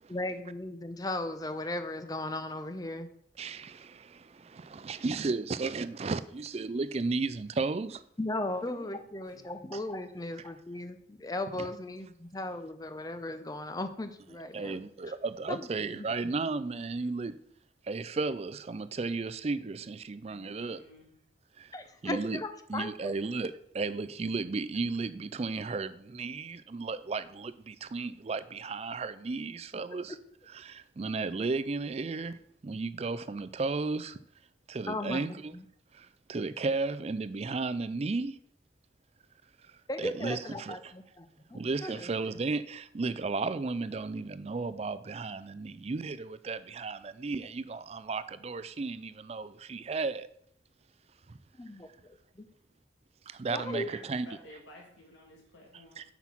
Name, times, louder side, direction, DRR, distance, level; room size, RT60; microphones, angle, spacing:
voice 1, 0.1-3.1 8.2-14.8 15.5-15.7 15.9-16.3 21.7-22.9 34.9-35.6 39.9-42.1 51.6-52.5 53.5-53.9, left 2 dB, 20° left, 0.6 m, -37 dB
voice 2, 3.4-8.0 11.5-11.7 14.5-17.4 17.8-20.8 21.6-21.7 22.0-22.4 22.7-30.2 30.5-32.4 32.6-34.2 34.7-35.5 35.9-38.4 40.0-40.9 41.5-50.3 51.3-51.4 53.3-54.3 56.0-56.1, right 3 dB, 35° right, 0.4 m, -34 dB
voice 3, 8.4-9.0 9.2-9.5 20.2-21.1 53.6-56.0, left 1 dB, 85° left, 2.0 m, -53 dB
5.9 x 5.8 x 6.0 m
head